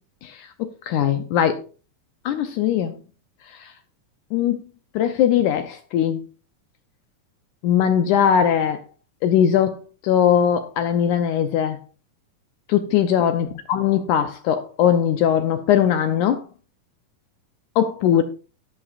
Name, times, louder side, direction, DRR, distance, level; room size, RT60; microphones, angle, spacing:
voice 1, 0.2-1.6 2.3-3.0 3.5-3.7 4.3-4.6 5.0-6.2 7.6-8.8 9.2-9.8 10.0-11.8 12.7-16.4 17.8-18.2, left 9 dB, 80° left, 1.9 m, -20 dB
13.0 x 11.5 x 2.4 m
omnidirectional pair, 4.1 m